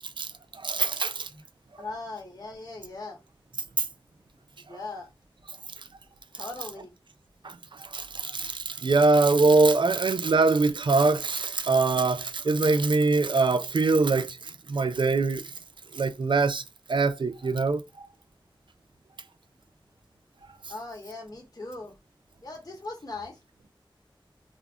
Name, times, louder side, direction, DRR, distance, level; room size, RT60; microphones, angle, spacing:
voice 1, 0.0-1.3 3.8-3.9 7.4-15.5 15.9-16.6 16.9-18.1, right 3 dB, 65° right, 0.4 m, -23 dB
voice 2, 1.8-3.2 4.7-5.1 6.3-7.0 20.7-21.9 22.4-23.4, left 3 dB, 45° left, 0.9 m, -39 dB
2.3 x 2.0 x 3.5 m
wide cardioid pair, 60°, 9 cm